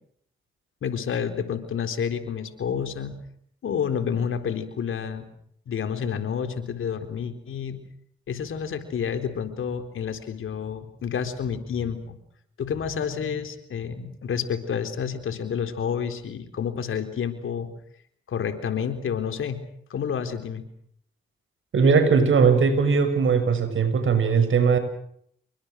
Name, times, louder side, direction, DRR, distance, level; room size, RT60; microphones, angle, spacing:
voice 1, 0.8-3.1 3.6-5.3 5.7-7.8 8.3-12.2 12.6-17.7 18.3-19.6 19.9-20.6, left 7 dB, 75° left, 8 dB, 4.0 m, -29 dB
voice 2, 21.7-24.8, right 5 dB, 70° right, 9 dB, 6.7 m, -19 dB
29.5 x 24.0 x 6.5 m, 0.69 s
supercardioid pair, 40°, 21 cm